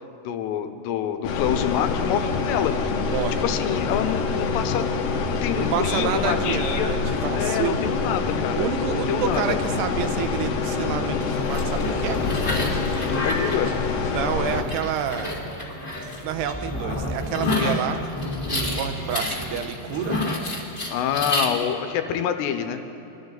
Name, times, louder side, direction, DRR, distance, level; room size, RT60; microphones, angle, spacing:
voice 1, 0.2-2.7 3.4-4.9 5.3-6.9 7.3-8.7 9.1-9.6 13.2-13.7 20.9-22.8, left 9 dB, 90° left, 8 dB, 2.9 m, -26 dB
sound 1, 1.2-14.6, left 4 dB, 70° left, 2.3 m, -26 dB
voice 2, 3.0-3.4 5.5-7.8 8.6-12.2 14.1-15.4 16.2-18.0 18.5-20.2, right 8 dB, 80° right, 8 dB, 2.8 m, -29 dB
sound 2, 11.3-21.5, left 2 dB, 25° left, 1.2 m, -29 dB
24.0 x 13.5 x 4.0 m, 3.0 s
omnidirectional pair, 4.8 m